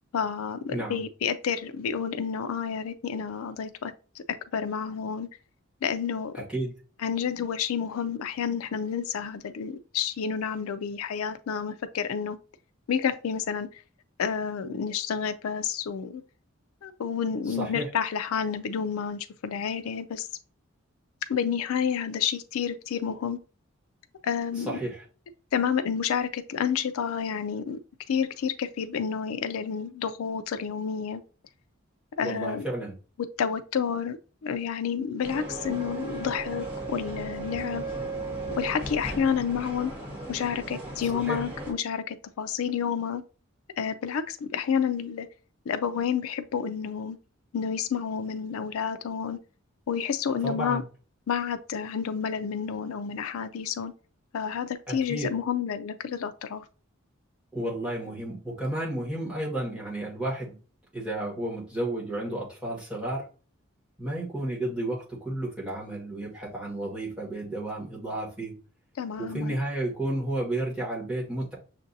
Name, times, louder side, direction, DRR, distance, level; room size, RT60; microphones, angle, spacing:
voice 1, 0.1-4.2 4.5-5.3 5.8-6.4 7.0-12.4 12.9-13.8 14.2-16.2 16.8-20.3 21.3-23.4 24.2-24.8 25.5-27.8 28.1-31.2 32.2-32.6 33.4-34.2 34.4-37.8 38.5-39.9 40.3-43.2 43.8-45.3 45.7-47.2 47.5-49.4 49.9-50.8 51.3-53.9 54.3-56.6 69.0-69.5, left 7 dB, 85° left, 0.4 m, -30 dB
voice 2, 0.7-1.0 6.3-6.7 17.5-17.9 24.6-25.0 32.2-32.9 41.1-41.4 50.4-50.8 54.9-55.3 57.5-60.6 60.9-63.3 64.0-68.5 69.2-71.5, right 1 dB, 5° right, 1.5 m, -32 dB
sound 1, 35.2-41.7, right 2 dB, 25° right, 1.4 m, -36 dB
6.5 x 2.6 x 2.6 m
head